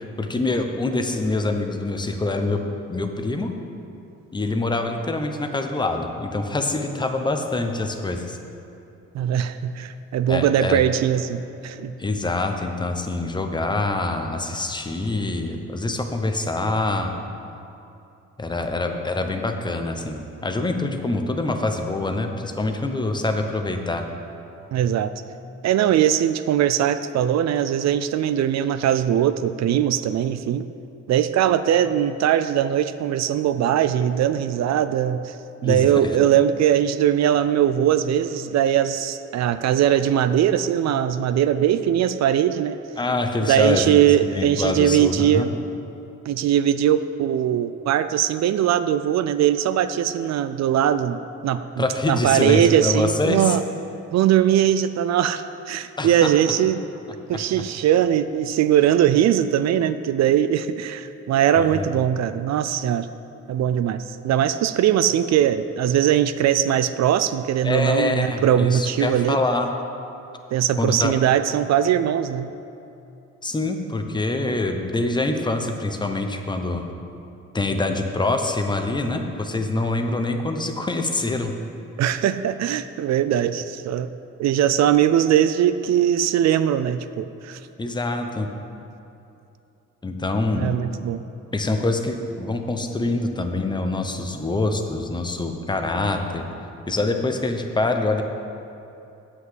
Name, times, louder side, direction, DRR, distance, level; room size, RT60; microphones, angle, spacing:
voice 1, 0.0-2.6 2.9-3.5 4.3-8.4 10.3-10.8 12.0-17.1 18.4-24.1 35.6-35.9 36.2-36.3 43.0-45.5 51.8-53.6 56.0-56.3 57.3-57.6 61.5-61.9 67.6-69.7 70.8-71.1 73.4-76.8 77.5-81.5 87.8-88.5 90.0-90.7 91.5-96.4 96.9-98.2, left 2 dB, 15° left, 5 dB, 0.8 m, -25 dB
voice 2, 9.1-11.9 24.7-25.1 25.6-30.7 31.1-35.4 35.6-42.8 43.5-45.5 46.3-53.6 54.1-56.8 57.3-63.1 63.5-69.4 70.5-72.5 82.0-84.1 84.4-87.6 90.6-91.2, right 10 dB, 60° right, 12 dB, 0.4 m, -20 dB
8.0 x 6.0 x 7.6 m, 2.8 s
cardioid pair, 90°, 30 cm